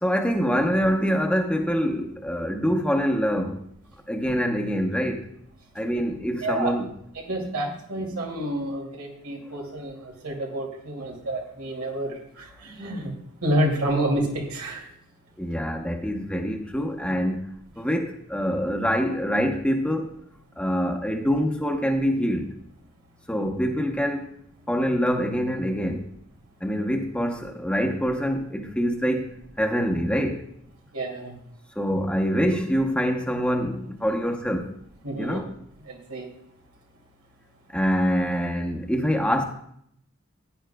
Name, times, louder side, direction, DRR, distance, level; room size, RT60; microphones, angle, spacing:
voice 1, 0.0-3.6 4.1-5.3 5.7-6.9 15.4-17.4 17.8-20.1 20.6-22.5 23.3-24.3 24.7-26.1 26.6-29.3 29.6-30.4 31.8-34.7 35.2-35.5 37.7-39.4, equal, 5° left, 0.8 m, -25 dB
voice 2, 6.4-6.7 7.1-13.1 13.4-14.9 30.9-31.4 35.0-35.4 35.9-36.3, right 1 dB, 90° right, 2.5 m, -29 dB
16.0 x 9.5 x 2.3 m
head